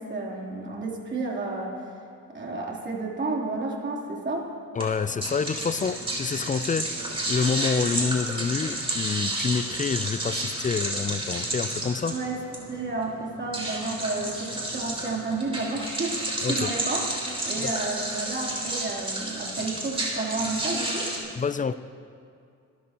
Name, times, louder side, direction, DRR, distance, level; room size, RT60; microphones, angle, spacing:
voice 1, 0.0-1.8 2.3-4.5 12.1-12.4 12.7-17.0 17.4-21.1, right 3 dB, 35° right, -3 dB, 3.4 m, -31 dB
voice 2, 4.8-6.9 7.3-12.2 16.4-16.7 17.6-17.7 21.4-21.7, left 5 dB, 25° left, 14 dB, 0.5 m, -27 dB
sound 1, 4.8-21.2, right 1 dB, 20° right, 3.9 m, -31 dB
25.0 x 13.0 x 3.0 m, 2.4 s
cardioid pair, 90°, 30 cm